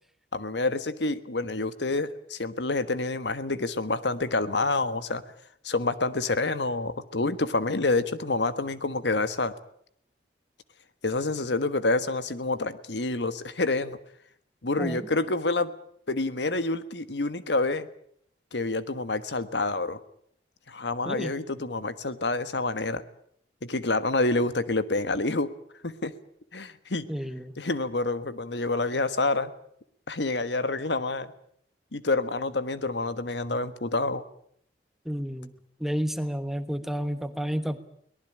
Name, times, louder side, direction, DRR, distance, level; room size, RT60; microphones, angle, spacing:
voice 1, 0.3-5.2 5.6-9.5 11.0-14.0 14.6-15.7 16.1-17.9 18.5-20.0 20.7-23.0 23.6-25.5 25.8-26.1 26.5-27.1 27.6-29.5 30.1-31.3 31.9-34.2, left 2 dB, 70° left, 13 dB, 1.4 m, -28 dB
voice 2, 14.8-15.1 21.0-21.4 27.1-27.6 35.0-35.5 35.8-37.8, equal, ahead, 10 dB, 1.2 m, -31 dB
23.0 x 19.0 x 8.8 m, 0.68 s
head